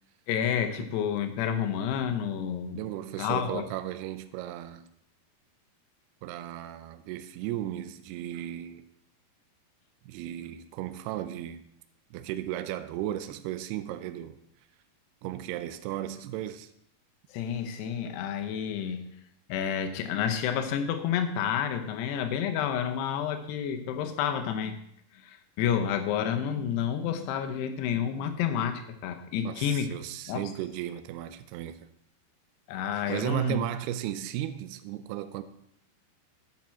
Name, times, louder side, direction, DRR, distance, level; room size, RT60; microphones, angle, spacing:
voice 1, 0.3-2.8 3.2-3.6 17.3-19.1 19.5-24.8 25.1-29.9 30.3-30.4 32.7-33.6, left 8 dB, 80° left, 2.9 m, -30 dB
voice 2, 2.7-4.9 6.2-8.9 10.0-11.6 12.1-14.4 15.2-16.7 29.4-31.8 33.1-35.4, right 13 dB, 80° right, 2.5 m, -35 dB
10.5 x 7.5 x 4.4 m
omnidirectional pair, 4.9 m